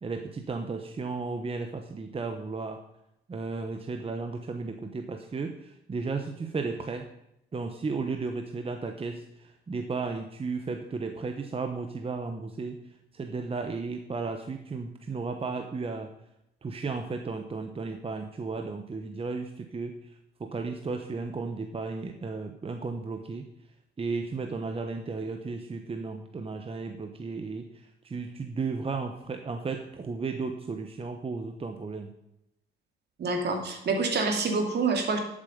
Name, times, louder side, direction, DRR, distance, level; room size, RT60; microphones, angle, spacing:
voice 1, 0.0-2.8 3.3-7.1 7.5-12.8 13.1-16.1 16.6-19.9 20.4-23.4 24.0-27.7 28.0-32.1, right 4 dB, 30° right, 5 dB, 1.0 m, -34 dB
voice 2, 33.2-35.2, right 4 dB, 55° right, 4 dB, 2.6 m, -27 dB
11.5 x 7.5 x 5.3 m, 0.82 s
cardioid pair, 90°, 20 cm